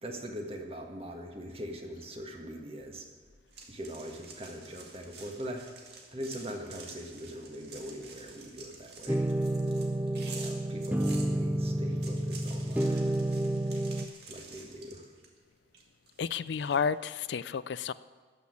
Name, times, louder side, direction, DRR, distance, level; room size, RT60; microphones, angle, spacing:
voice 1, 0.0-3.1 3.7-5.6 6.1-9.3 10.1-13.1 14.3-15.1, equal, 35° right, 2 dB, 1.7 m, -42 dB
sound 1, 3.5-11.3 11.8-15.4 15.7-16.8, right 4 dB, 60° right, 2.2 m, -49 dB
sound 2, 9.1-14.1, right 1 dB, 10° right, 0.4 m, -30 dB
voice 2, 16.2-17.9, left 6 dB, 75° left, 16 dB, 0.4 m, -31 dB
14.0 x 6.3 x 9.7 m, 1.5 s
head